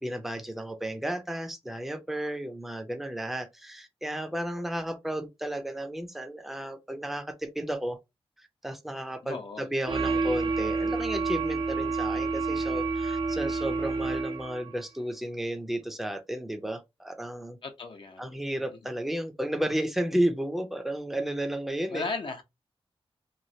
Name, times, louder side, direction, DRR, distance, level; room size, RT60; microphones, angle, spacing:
voice 1, 0.0-8.0 8.4-17.6 18.2-22.0, right 1 dB, ahead, 0.5 m, -33 dB
voice 2, 9.2-9.7 17.6-18.4 21.9-22.4, left 4 dB, 55° left, 0.6 m, -36 dB
sound 1, 9.9-14.7, right 4 dB, 50° right, 0.5 m, -29 dB
3.1 x 2.3 x 2.7 m
wide cardioid pair, 145°, 10 cm